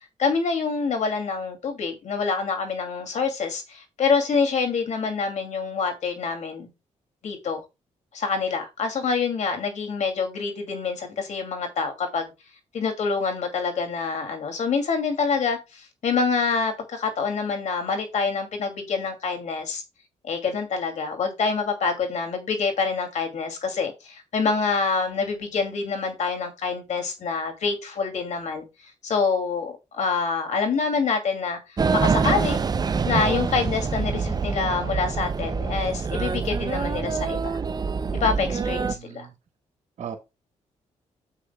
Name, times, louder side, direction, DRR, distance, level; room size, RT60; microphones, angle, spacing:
voice 1, 0.2-6.7 7.2-7.6 8.1-12.3 12.7-19.8 20.2-31.6 31.9-32.6 33.0-37.6 38.2-39.3, left 5 dB, 70° left, 2.6 m, -26 dB
sound 1, 31.8-38.9, right 5 dB, 30° right, 0.5 m, -25 dB
voice 2, 38.9-39.3 40.0-40.2, right 8 dB, 70° right, 1.6 m, -37 dB
9.8 x 7.7 x 2.3 m
cardioid pair, 85°, 13 cm